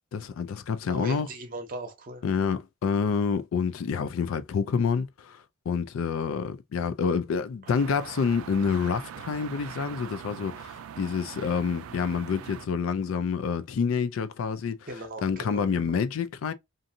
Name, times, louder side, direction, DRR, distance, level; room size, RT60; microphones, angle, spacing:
voice 1, 0.1-1.3 2.2-14.9 15.2-16.5, left 6 dB, 75° left, 0.4 m, -28 dB
voice 2, 0.9-2.2 14.9-16.0, right 1 dB, 40° right, 0.7 m, -39 dB
sound 1, 7.7-12.7, right 8 dB, 85° right, 0.3 m, -42 dB
2.6 x 2.5 x 2.6 m
head